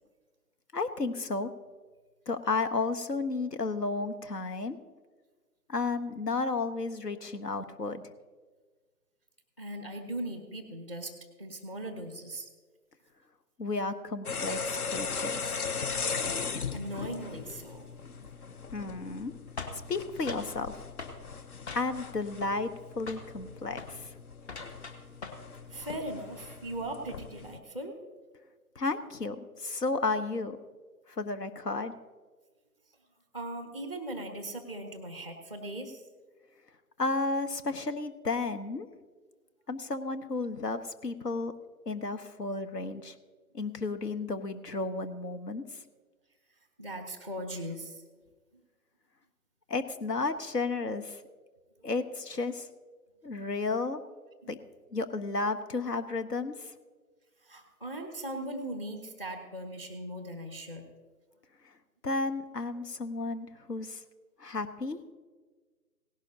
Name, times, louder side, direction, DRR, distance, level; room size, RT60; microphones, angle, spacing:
voice 1, 0.7-1.5 2.3-4.8 5.7-8.0 13.6-15.6 18.7-19.3 19.9-20.8 21.7-22.7 23.0-24.1 28.8-30.6 31.1-31.9 37.0-38.9 39.7-41.5 41.9-43.1 43.5-45.6 49.7-51.2 51.8-52.7 53.2-54.0 54.5-54.6 54.9-56.7 62.0-64.0 64.4-65.0, left 3 dB, 85° left, 10 dB, 1.1 m, -32 dB
voice 2, 9.6-12.5 16.7-17.8 25.7-28.0 33.3-36.0 46.8-48.0 57.4-60.8, right 1 dB, 20° left, 6 dB, 0.7 m, -39 dB
sound 1, 14.3-27.6, left 5 dB, 65° left, 0.9 m, -38 dB
sound 2, 19.6-20.5 21.0-21.2 21.7-22.1 22.4-22.8 23.1-23.3 23.7-24.0 24.4-25.5 25.8-26.1, left 4 dB, 45° left, 1.4 m, -42 dB
17.5 x 11.5 x 2.8 m, 1.4 s
figure-of-eight pair, 150°, 47 cm